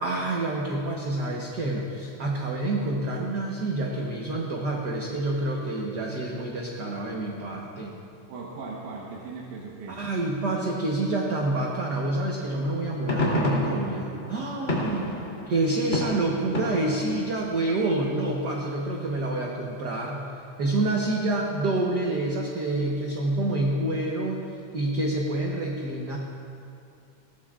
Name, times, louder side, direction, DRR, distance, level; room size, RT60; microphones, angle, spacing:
voice 1, 0.0-7.9 9.9-15.1 15.5-20.2 20.6-24.4 24.7-26.2, right 2 dB, 60° right, -1 dB, 1.1 m, -27 dB
voice 2, 8.3-10.0 14.9-15.1, right 4 dB, 90° right, -4 dB, 2.7 m, -38 dB
sound 1, 12.7-17.3, left 1 dB, 25° left, 3.2 m, -30 dB
21.5 x 17.5 x 2.5 m, 2.5 s
omnidirectional pair, 3.3 m